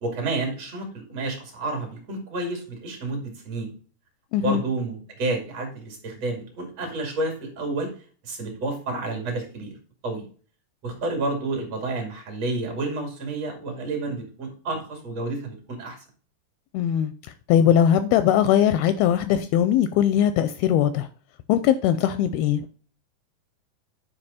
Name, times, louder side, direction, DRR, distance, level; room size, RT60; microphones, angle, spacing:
voice 1, 0.0-3.7 4.4-7.9 8.2-9.8 10.0-10.2 10.8-16.0, right 2 dB, 45° right, 2 dB, 2.9 m, -30 dB
voice 2, 4.3-4.6 16.7-17.1 17.5-21.1 21.5-22.7, left 10 dB, 85° left, 12 dB, 2.3 m, -20 dB
9.8 x 5.2 x 4.2 m, 0.42 s
omnidirectional pair, 4.7 m